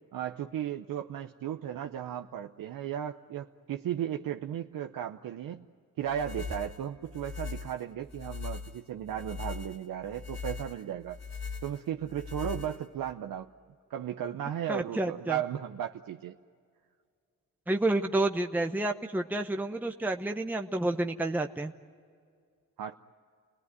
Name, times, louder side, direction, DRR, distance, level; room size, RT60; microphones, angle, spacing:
voice 1, 0.1-5.7 6.0-11.2 11.6-13.5 13.9-16.4 22.8-23.0, right 10 dB, 75° right, 5 dB, 0.8 m, -35 dB
sound 1, 6.1-13.1, left 5 dB, 50° left, 2.4 m, -40 dB
voice 2, 14.7-15.4 17.7-21.7, right 2 dB, 5° right, 5 dB, 0.9 m, -29 dB
29.5 x 18.5 x 9.5 m, 2.1 s
cardioid pair, 85°, 34 cm